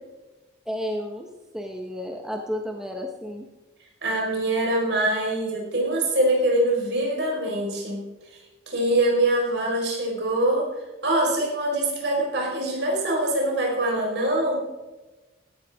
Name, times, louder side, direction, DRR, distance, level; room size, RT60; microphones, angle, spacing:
voice 1, 0.7-1.3 1.5-3.5, equal, 5° right, 1 dB, 1.0 m, -32 dB
voice 2, 4.0-8.0 8.7-10.7 11.0-14.6, right 1 dB, 65° right, -1 dB, 4.8 m, -24 dB
16.0 x 12.0 x 3.7 m, 1.1 s
head